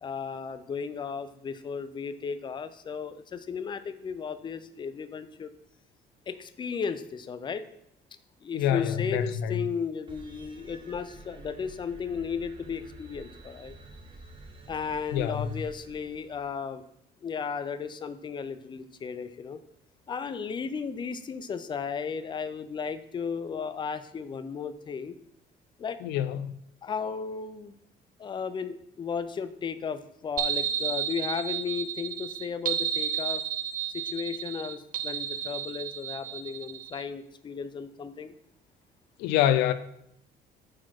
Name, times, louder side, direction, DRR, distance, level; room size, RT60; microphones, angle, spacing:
voice 1, 0.0-5.5 6.3-7.6 8.4-13.7 14.7-16.8 17.2-19.6 20.1-25.2 25.8-26.0 26.8-27.7 28.2-33.4 33.9-38.3, left 6 dB, 25° left, 0.5 m, -35 dB
voice 2, 8.5-9.6 15.1-15.5 26.0-26.5 39.2-39.7, left 10 dB, 90° left, 0.4 m, -26 dB
sound 1, 10.1-16.7, right 2 dB, 30° right, 1.1 m, -49 dB
sound 2, 30.4-37.0, right 9 dB, 55° right, 0.6 m, -32 dB
4.7 x 4.2 x 5.8 m
cardioid pair, 110°, 17 cm